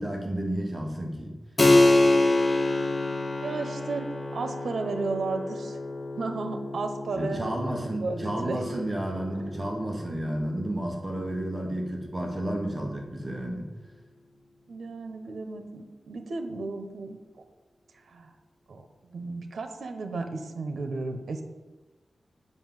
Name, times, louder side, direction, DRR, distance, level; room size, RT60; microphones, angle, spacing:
voice 1, 0.0-1.3 7.2-13.7, right 1 dB, 20° right, 0 dB, 1.4 m, -31 dB
Keyboard (musical), 1.6-11.8, left 2 dB, 25° left, 0.7 m, -27 dB
voice 2, 3.4-5.8 6.2-7.5 8.0-8.9 14.7-17.4 18.0-18.3 18.7-21.4, right 3 dB, 75° right, 6 dB, 1.1 m, -34 dB
7.9 x 5.7 x 7.8 m, 1.2 s
wide cardioid pair, 180°, 0 cm